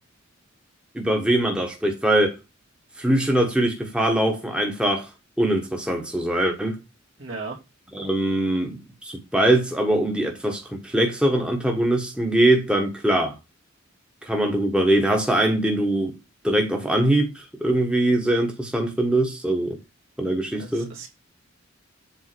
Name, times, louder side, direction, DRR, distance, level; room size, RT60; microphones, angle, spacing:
voice 1, 0.9-2.3 3.0-5.1 5.4-6.8 7.9-13.3 14.2-16.1 16.4-19.8 20.2-20.9, right 1 dB, 5° right, 1.2 m, -22 dB
voice 2, 7.2-7.6 20.5-21.1, right 3 dB, 70° right, 2.5 m, -36 dB
8.1 x 3.5 x 6.1 m
head